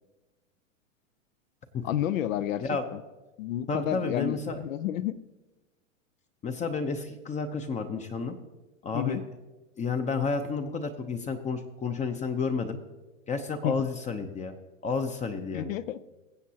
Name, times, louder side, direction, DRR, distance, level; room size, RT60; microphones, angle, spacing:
voice 1, 1.8-3.0 3.4-5.1 8.9-9.2 13.6-13.9 15.5-16.0, left 11 dB, 80° left, 16 dB, 0.7 m, -30 dB
voice 2, 3.7-4.6 6.4-8.4 8.8-9.2 9.8-12.8 13.3-14.5 14.8-15.7, left 4 dB, 20° left, 7 dB, 0.6 m, -31 dB
22.0 x 7.4 x 2.8 m, 1.1 s
hypercardioid pair, 120°, 39 cm